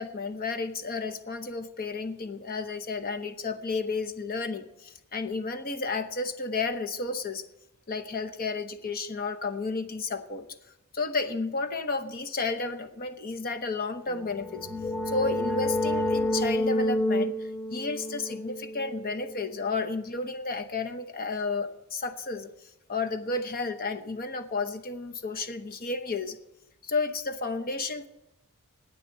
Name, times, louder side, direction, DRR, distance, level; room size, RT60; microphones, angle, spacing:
voice 1, 0.0-7.5 7.9-10.5 10.9-14.7 15.1-22.5 22.9-26.4 26.8-28.1, left 3 dB, 40° left, 9 dB, 0.9 m, -32 dB
sound 1, 14.2-19.8, left 1 dB, 5° left, 0.9 m, -29 dB
9.8 x 8.7 x 9.7 m, 0.89 s
head